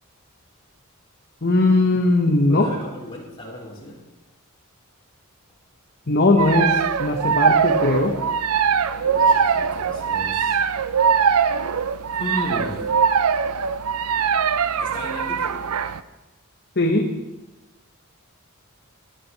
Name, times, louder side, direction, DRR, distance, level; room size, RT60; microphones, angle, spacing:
voice 1, 1.4-2.7 6.1-8.2 16.8-17.1, left 2 dB, 50° left, 2 dB, 1.2 m, -19 dB
voice 2, 2.5-4.0 8.9-10.6 12.2-12.8 14.8-15.6, equal, 25° left, -5 dB, 4.0 m, -34 dB
sound 1, 6.4-16.0, right 6 dB, 85° right, 0.5 m, -21 dB
19.0 x 10.0 x 4.2 m, 1.1 s
head